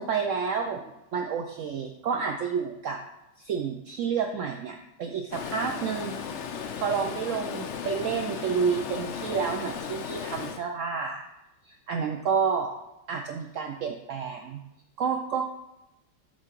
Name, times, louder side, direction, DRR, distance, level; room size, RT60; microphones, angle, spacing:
voice 1, 0.0-3.0 3.4-6.2 6.8-11.2 11.6-12.7 13.1-14.6 15.0-15.5, right 6 dB, 85° right, 4 dB, 0.6 m, -30 dB
Stream, 5.3-10.6, left 6 dB, 80° left, 0.6 m, -36 dB
7.4 x 3.7 x 5.9 m, 0.92 s
omnidirectional pair, 2.0 m